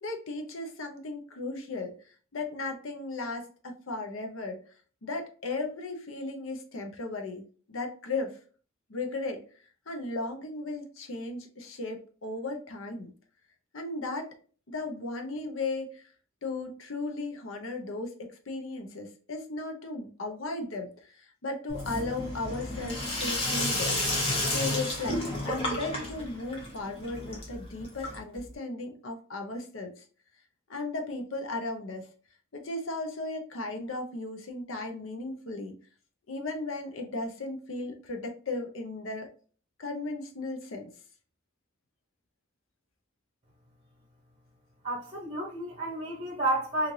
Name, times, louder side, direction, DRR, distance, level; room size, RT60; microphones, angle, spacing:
voice 1, 0.0-4.6 5.0-8.4 8.9-9.4 9.9-13.1 13.7-14.3 14.7-16.1 16.4-24.0 24.5-30.0 30.7-32.1 32.5-35.7 36.3-39.3 39.8-40.9, left 2 dB, 70° left, 0.7 m, -36 dB
Sink (filling or washing), 21.7-28.5, left 1 dB, 30° left, 0.9 m, -32 dB
voice 2, 44.8-46.9, right 1 dB, 30° right, 0.7 m, -31 dB
3.1 x 2.5 x 2.6 m
head